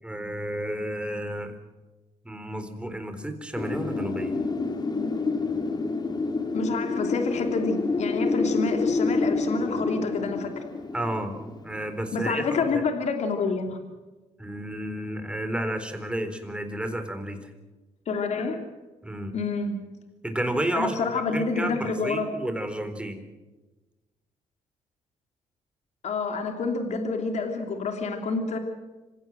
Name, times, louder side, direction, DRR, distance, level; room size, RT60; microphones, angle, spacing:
voice 1, 0.0-1.5 2.2-4.4 10.9-12.4 12.7-12.8 14.4-17.4 19.0-19.3 20.2-21.0 21.3-23.2, right 1 dB, 10° right, 7 dB, 4.1 m, -31 dB
Wind, 3.6-12.3, left 3 dB, 35° left, 2.3 m, -28 dB
voice 2, 6.5-10.5 12.1-13.8 18.1-18.6 19.3-19.8 20.7-22.3 26.0-28.6, left 4 dB, 65° left, 5 dB, 2.8 m, -28 dB
26.5 x 17.0 x 7.6 m, 1.2 s
cardioid pair, 85°, 13 cm